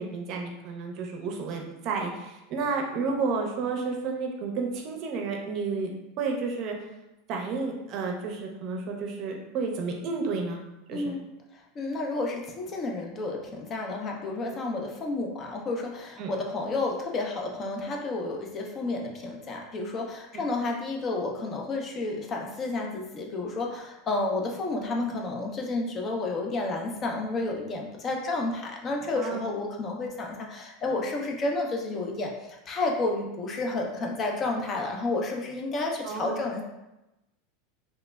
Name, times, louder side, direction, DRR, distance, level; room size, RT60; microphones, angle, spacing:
voice 1, 0.0-5.9 6.2-6.8 7.3-10.6 10.9-11.2 16.2-16.3 29.1-29.5 36.0-36.5, right 4 dB, 50° right, 1 dB, 0.5 m, -31 dB
voice 2, 10.9-11.2 11.5-36.6, left 2 dB, 35° left, 1 dB, 0.5 m, -31 dB
3.1 x 2.0 x 2.2 m, 0.96 s
hypercardioid pair, 100°, 0 cm